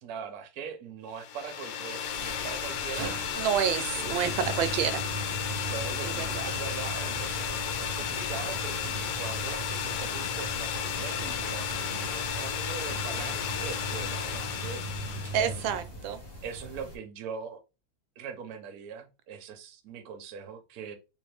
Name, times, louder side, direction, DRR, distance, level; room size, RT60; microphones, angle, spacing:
voice 1, 0.0-3.3 4.0-4.4 5.7-14.8 15.3-16.0 16.4-17.6 18.2-21.0, right 6 dB, 60° right, 1.1 m, -41 dB
sound 1, 1.2-15.6, left 8 dB, 85° left, 1.3 m, -33 dB
sound 2, 2.2-17.0, equal, 25° left, 1.0 m, -46 dB
sound 3, 2.7-16.1, right 1 dB, 35° right, 0.7 m, -40 dB
voice 2, 3.3-5.0 6.0-6.5 15.3-16.2, right 8 dB, 85° right, 1.3 m, -29 dB
3.7 x 2.7 x 3.3 m
omnidirectional pair, 2.1 m